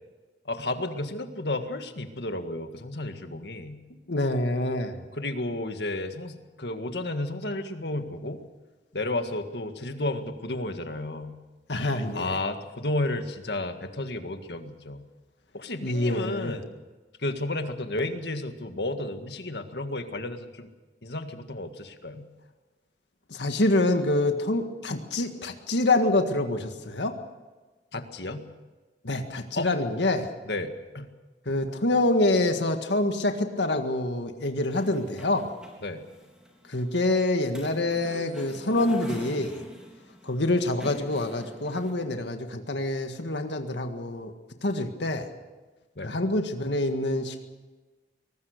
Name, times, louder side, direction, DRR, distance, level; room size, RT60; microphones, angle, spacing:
voice 1, 0.5-3.8 5.1-8.4 8.9-11.4 12.1-15.0 15.5-16.7 17.2-20.7 21.0-22.2 27.9-28.5 29.6-29.7 30.4-31.1 35.8-36.0 46.0-46.2, left 2 dB, 75° left, 7 dB, 1.9 m, -32 dB
voice 2, 4.1-5.0 11.7-12.4 15.8-16.6 23.3-27.2 29.0-30.3 31.5-35.6 36.7-39.6 40.3-44.3 44.6-45.3 46.0-47.5, left 2 dB, 90° left, 6 dB, 1.8 m, -26 dB
sound 1, 34.7-41.9, equal, 5° right, 4.0 m, -43 dB
23.0 x 20.0 x 6.6 m, 1.3 s
head